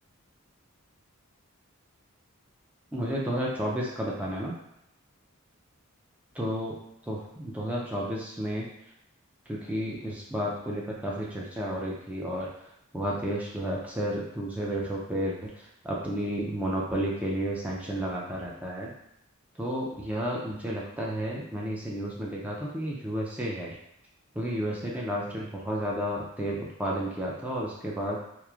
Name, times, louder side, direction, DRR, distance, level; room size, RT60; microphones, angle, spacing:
voice 1, 2.9-4.6 6.3-6.8 7.0-8.7 9.5-12.5 12.9-18.9 19.6-23.8 24.4-28.2, equal, 5° right, -4 dB, 0.3 m, -32 dB
2.9 x 2.0 x 2.3 m, 0.76 s
head